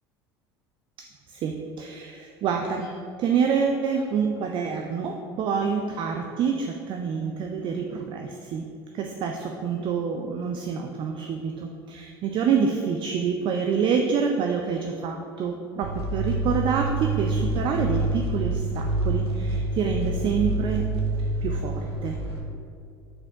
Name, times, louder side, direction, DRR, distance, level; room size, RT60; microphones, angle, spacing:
voice 1, 1.0-8.7 8.9-20.8 21.4-22.2, right 6 dB, 40° right, 3 dB, 0.5 m, -27 dB
sound 1, 15.8-22.4, right 2 dB, 80° right, 0.9 m, -27 dB
5.2 x 4.1 x 4.9 m, 2.4 s
figure-of-eight pair, 70°, 13 cm